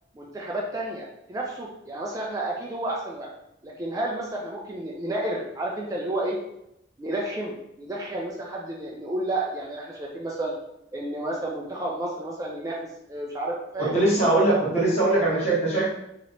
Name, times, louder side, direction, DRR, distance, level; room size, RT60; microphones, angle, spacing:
voice 1, 0.1-3.3 3.6-6.4 7.0-10.5 10.9-12.8 13.1-13.9, right 1 dB, 20° right, -2 dB, 0.3 m, -31 dB
voice 2, 13.8-15.9, right 2 dB, 35° left, -6 dB, 1.1 m, -21 dB
3.1 x 2.9 x 2.6 m, 0.82 s
head